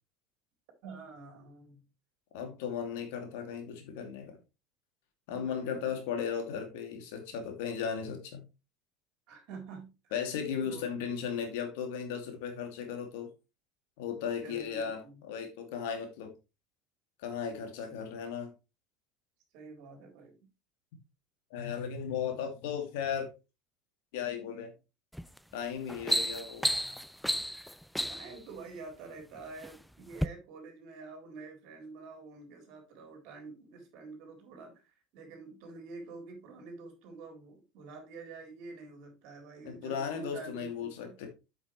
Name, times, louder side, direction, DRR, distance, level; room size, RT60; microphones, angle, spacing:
voice 1, 0.8-1.8 5.3-6.0 9.3-9.9 10.6-10.8 14.4-15.2 17.8-18.0 19.5-20.4 28.1-34.8 35.1-41.2, right 3 dB, 60° right, 3.9 m, -47 dB
voice 2, 2.3-4.3 5.3-8.4 10.1-13.3 14.0-15.0 15.3-16.3 17.2-18.5 21.5-23.3 24.1-24.7 25.5-26.7 39.6-41.3, left 7 dB, 65° left, 2.6 m, -36 dB
sound 1, 25.1-25.4 25.8-28.4 29.2-29.7 30.1-30.3, equal, ahead, 0.4 m, -32 dB
8.3 x 7.8 x 3.3 m
hypercardioid pair, 75°, 0 cm